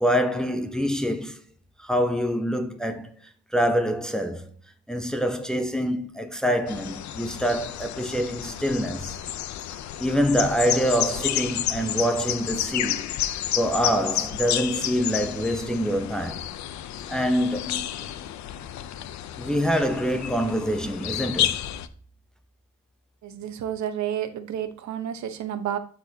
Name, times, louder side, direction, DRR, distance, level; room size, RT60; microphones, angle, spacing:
voice 1, 0.0-1.4 1.8-4.5 4.9-9.2 10.0-16.5 17.1-18.1 19.4-21.6, equal, ahead, 0.8 m, -26 dB
sound 1, 6.7-21.9, left 11 dB, 70° left, 0.7 m, -31 dB
voice 2, 23.2-25.8, right 10 dB, 75° right, 1.0 m, -30 dB
12.5 x 4.5 x 2.8 m
cardioid pair, 115°, 29 cm